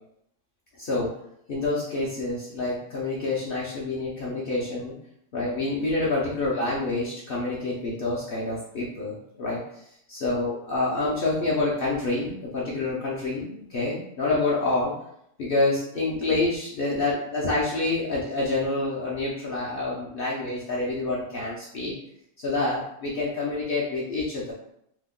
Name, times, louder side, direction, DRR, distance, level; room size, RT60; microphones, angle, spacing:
voice 1, 0.8-1.1 1.5-4.9 5.3-14.9 15.4-21.9 22.4-24.5, left 2 dB, 60° left, -5 dB, 0.7 m, -27 dB
2.9 x 2.1 x 3.6 m, 0.75 s
omnidirectional pair, 1.3 m